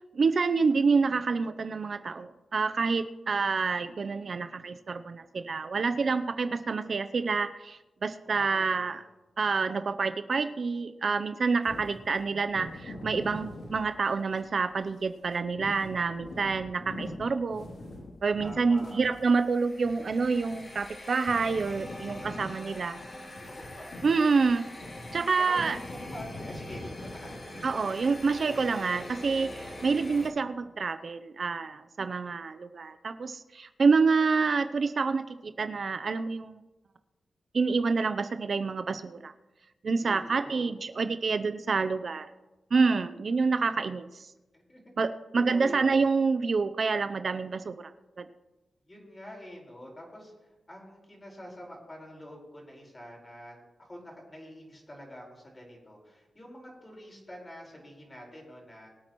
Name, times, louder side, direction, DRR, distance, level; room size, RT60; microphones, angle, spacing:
voice 1, 0.1-9.0 9.4-17.6 18.2-23.0 24.0-24.6 25.1-25.8 27.6-36.6 37.5-39.3 39.8-42.3 42.7-44.3 45.0-47.9 48.2-48.3, right 4 dB, 55° right, 10 dB, 0.6 m, -27 dB
voice 2, 5.7-6.1 8.2-9.0 18.4-19.0 23.1-23.9 25.4-27.4 40.0-40.7 44.5-44.8 45.5-46.0 48.9-58.9, equal, 25° left, -1 dB, 4.7 m, -46 dB
sound 1, 11.6-14.5 14.9-21.0 21.3-27.9, left 1 dB, 80° left, 2.8 m, -44 dB
sound 2, 19.0-30.3, left 1 dB, 40° left, 3.6 m, -44 dB
22.5 x 8.6 x 3.1 m, 1.1 s
cardioid pair, 85°, 0 cm